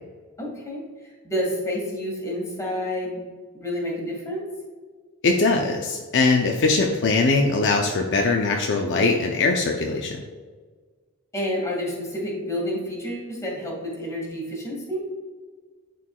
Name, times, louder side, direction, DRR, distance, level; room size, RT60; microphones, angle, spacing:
voice 1, 0.4-3.2 3.5-4.5 11.3-15.1, equal, 15° left, -3 dB, 1.9 m, -29 dB
voice 2, 5.2-10.2, left 3 dB, 55° left, 1 dB, 0.6 m, -21 dB
11.0 x 4.6 x 2.3 m, 1.5 s
head